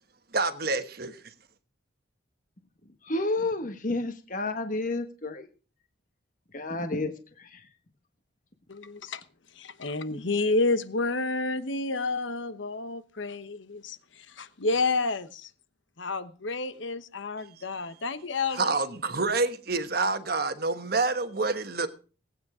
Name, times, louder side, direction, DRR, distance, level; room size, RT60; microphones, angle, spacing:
voice 1, 0.3-1.2 18.5-21.9, right 3 dB, 50° right, 1.2 m, -27 dB
voice 2, 3.0-5.5 6.5-7.7 10.1-10.2, left 2 dB, 40° left, 1.3 m, -31 dB
voice 3, 8.7-9.2 9.6-15.5 16.0-18.7, left 3 dB, 70° left, 1.1 m, -30 dB
18.0 x 9.3 x 4.9 m
head